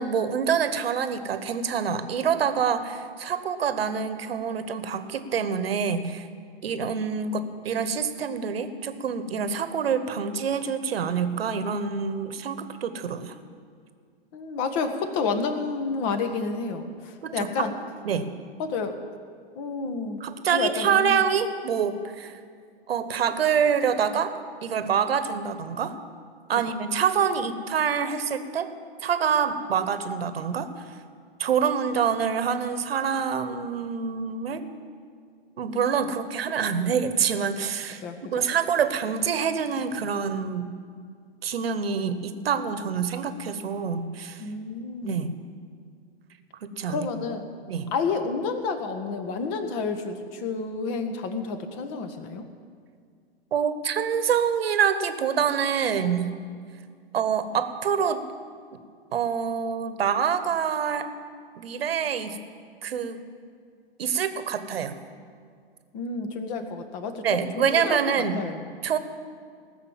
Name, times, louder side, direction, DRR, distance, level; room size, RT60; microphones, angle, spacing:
voice 1, 0.0-6.3 6.6-13.3 17.2-17.7 18.0-18.3 20.2-22.4 22.9-24.3 24.6-25.9 26.5-28.7 29.0-30.7 31.4-34.6 35.6-38.0 38.3-40.7 41.4-44.4 45.0-45.3 46.6-47.1 47.7-47.9 53.5-56.3 57.1-58.2 59.1-61.1 61.6-62.4 62.8-63.2 64.0-65.0 67.2-68.4 68.8-69.0, right 7 dB, 75° right, 11 dB, 1.2 m, -26 dB
voice 2, 14.3-17.7 18.6-19.0 19.5-20.2 20.5-21.2 38.0-38.3 44.4-45.3 46.9-47.5 47.9-52.4 65.9-68.6, left 4 dB, 40° left, 7 dB, 1.6 m, -30 dB
18.5 x 6.7 x 7.5 m, 2.1 s
hypercardioid pair, 110°, 31 cm